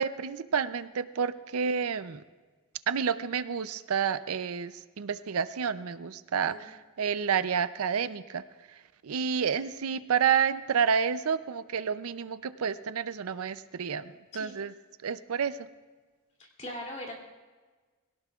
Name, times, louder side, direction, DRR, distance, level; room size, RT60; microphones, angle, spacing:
voice 1, 0.0-2.2 2.9-8.4 9.0-14.7 15.0-15.6, right 7 dB, 75° right, 13 dB, 0.5 m, -29 dB
voice 2, 16.4-17.1, left 1 dB, 30° left, 0 dB, 2.8 m, -40 dB
21.5 x 17.5 x 2.4 m, 1.3 s
head